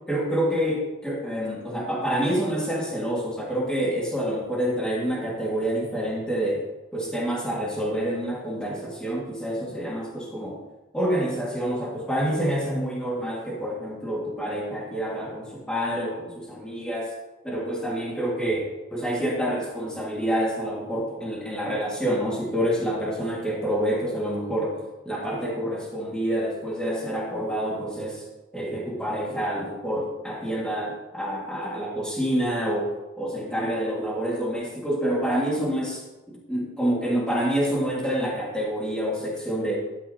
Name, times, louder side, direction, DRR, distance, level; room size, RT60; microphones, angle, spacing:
voice 1, 0.1-6.7 6.9-10.6 10.9-17.1 17.4-24.8 25.1-28.2 28.5-36.0 36.3-39.8, equal, 5° left, -4 dB, 1.9 m, -27 dB
12.0 x 9.3 x 2.8 m, 1.1 s
head